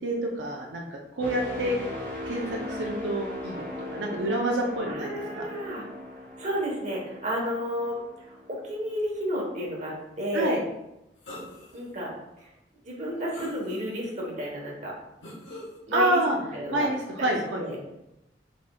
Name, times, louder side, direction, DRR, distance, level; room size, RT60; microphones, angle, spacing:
voice 1, 0.0-1.9 2.2-5.4 10.3-10.6 15.9-16.4 16.7-17.6, right 1 dB, 85° right, -1 dB, 0.6 m, -28 dB
sound 1, 1.2-9.0 9.5-9.7, left 1 dB, 10° left, 1.4 m, -39 dB
voice 2, 4.8-5.8 6.4-8.0 8.5-10.6 11.7-12.1 12.4-12.5 12.8-14.9 15.9-16.2 16.5-16.9 17.5-17.8, equal, 40° right, -3 dB, 1.1 m, -31 dB
sound 2, 11.2-11.8 12.4-12.5 13.3-14.1 15.2-15.8, left 1 dB, 85° left, 1.3 m, -42 dB
5.0 x 3.9 x 2.3 m, 0.90 s
head